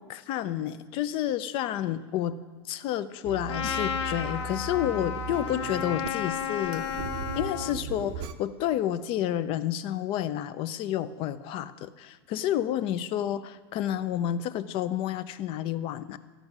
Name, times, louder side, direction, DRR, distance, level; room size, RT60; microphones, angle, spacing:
voice 1, 0.0-2.4 2.6-6.9 7.4-16.2, left 11 dB, 40° left, 14 dB, 0.5 m, -30 dB
sound 1, 3.2-8.3, right 5 dB, 40° right, 0.6 m, -38 dB
Trumpet, 3.5-7.8, left 8 dB, 85° left, 0.8 m, -33 dB
13.5 x 5.5 x 5.9 m, 1.4 s
supercardioid pair, 130°, 14 cm